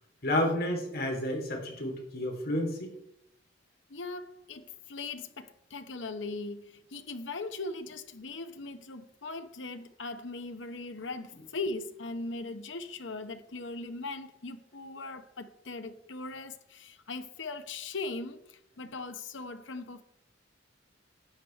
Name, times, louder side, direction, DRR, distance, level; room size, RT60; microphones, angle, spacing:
voice 1, 0.2-2.9, left 1 dB, 55° left, 3.0 m, -30 dB
voice 2, 3.9-20.0, left 3 dB, 70° left, 0.9 m, -39 dB
12.0 x 8.0 x 4.5 m
head